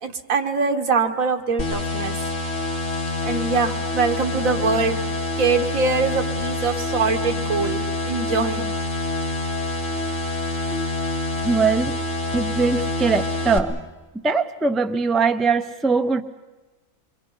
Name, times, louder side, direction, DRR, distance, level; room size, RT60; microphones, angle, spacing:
voice 1, 0.0-2.1 3.2-5.0 5.4-8.7, right 4 dB, 85° right, 5 dB, 1.8 m, -23 dB
sound 1, 1.6-13.6, left 2 dB, 50° left, 2.5 m, -26 dB
voice 2, 11.4-11.9 12.3-13.8 14.2-16.2, right 4 dB, ahead, 8 dB, 0.4 m, -21 dB
27.5 x 23.0 x 5.7 m, 1.2 s
omnidirectional pair, 1.4 m